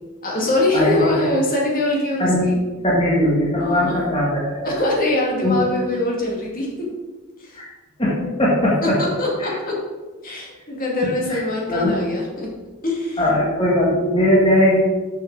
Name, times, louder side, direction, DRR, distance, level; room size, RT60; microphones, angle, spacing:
voice 1, 0.2-2.6 3.6-4.0 4.6-6.7 7.4-7.6 9.2-9.7 10.2-12.5 12.8-13.3, left 2 dB, 40° left, -3 dB, 2.1 m, -23 dB
voice 2, 0.7-1.1 2.2-2.5 2.8-4.8 5.4-5.6 7.5-7.7 8.0-9.0 9.4-9.5 11.3-11.4 11.7-12.0 13.2-14.8, left 1 dB, 25° left, -6 dB, 1.8 m, -19 dB
6.7 x 6.5 x 6.0 m, 1.3 s
head